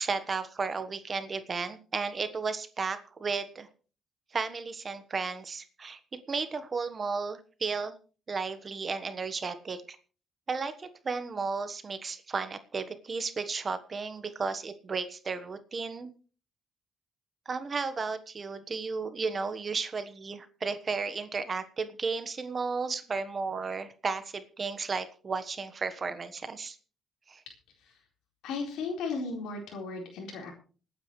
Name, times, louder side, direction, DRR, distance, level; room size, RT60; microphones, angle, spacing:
voice 1, 0.0-3.7 4.3-8.0 8.3-10.0 10.5-16.1 17.4-26.8 27.3-27.4, right 4 dB, 40° right, 10 dB, 1.3 m, -34 dB
voice 2, 28.4-30.5, left 4 dB, 90° left, 0 dB, 4.2 m, -35 dB
27.5 x 9.3 x 3.2 m, 0.38 s
cardioid pair, 90°, 0 cm